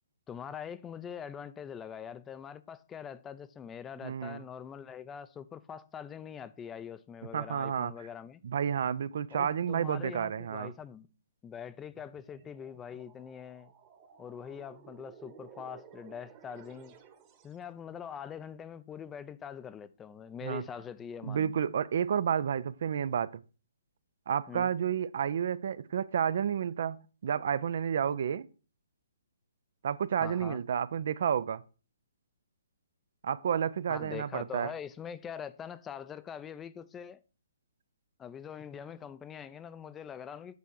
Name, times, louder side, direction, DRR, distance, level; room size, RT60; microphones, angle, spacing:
voice 1, 0.3-8.4 9.3-11.1 11.4-13.7 14.2-17.0 17.4-21.5 24.5-24.7 30.2-30.6 33.9-37.2 38.2-40.6, left 8 dB, 15° left, 0.4 m, -43 dB
voice 2, 4.0-4.4 7.3-7.9 8.4-10.7 20.4-20.6 21.2-23.4 24.3-28.5 29.8-31.6 33.2-34.7, right 8 dB, 60° right, 0.5 m, -31 dB
sound 1, 11.8-17.6, right 7 dB, 30° right, 1.1 m, -55 dB
8.2 x 3.5 x 6.2 m
hypercardioid pair, 140°, 0 cm